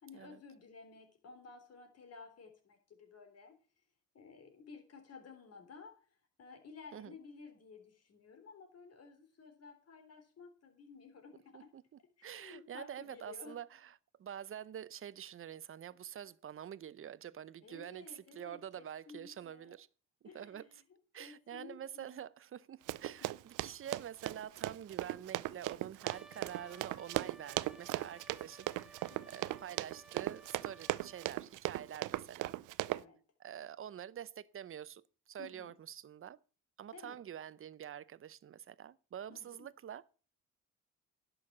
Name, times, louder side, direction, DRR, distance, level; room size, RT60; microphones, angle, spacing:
voice 1, 0.0-3.5 4.1-11.7 12.2-13.6 17.6-19.7 20.3-20.8 21.2-22.2 23.2-23.3 29.1-29.5 32.9-33.2 35.4-35.7 36.9-37.2 39.3-39.7, left 5 dB, 55° left, 3.6 m, -54 dB
voice 2, 12.2-19.9 20.2-20.6 21.1-32.6 33.4-36.4 36.8-40.1, right 9 dB, 45° right, 0.7 m, -47 dB
Run, 22.9-33.0, right 17 dB, 85° right, 0.5 m, -38 dB
Trumpet, 26.0-31.4, right 2 dB, ahead, 1.0 m, -59 dB
11.0 x 6.4 x 7.3 m
cardioid pair, 90°, 30 cm